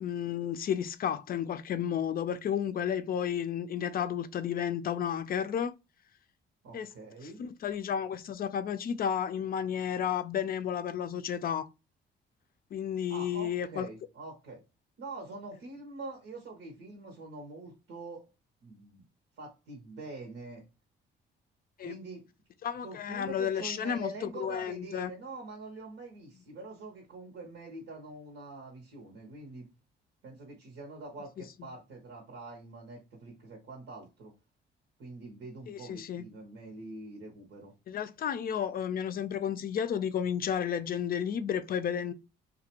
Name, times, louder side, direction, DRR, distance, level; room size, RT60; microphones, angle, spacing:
voice 1, 0.0-5.8 6.7-6.9 7.4-11.7 12.7-13.9 21.8-21.9 22.6-25.1 35.7-36.2 37.9-42.1, left 8 dB, 50° left, 0.4 m, -32 dB
voice 2, 6.6-7.4 13.1-14.6 15.0-18.2 18.6-19.0 19.4-20.6 21.8-22.2 22.8-29.7 30.2-34.3 35.0-37.7, right 2 dB, 85° right, 0.9 m, -45 dB
2.4 x 2.2 x 2.9 m
cardioid pair, 90°, 20 cm